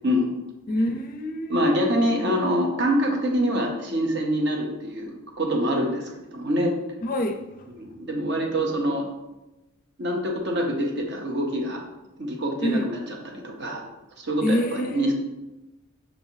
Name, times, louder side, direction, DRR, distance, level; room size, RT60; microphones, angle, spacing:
voice 1, 0.7-1.6 7.0-7.4 12.6-12.8 14.4-15.1, left 1 dB, 40° left, 5 dB, 0.4 m, -26 dB
voice 2, 1.5-6.8 7.8-9.1 10.0-11.8 12.2-13.8 14.2-15.1, equal, 55° right, 1 dB, 0.8 m, -25 dB
5.9 x 3.2 x 2.7 m, 0.98 s
head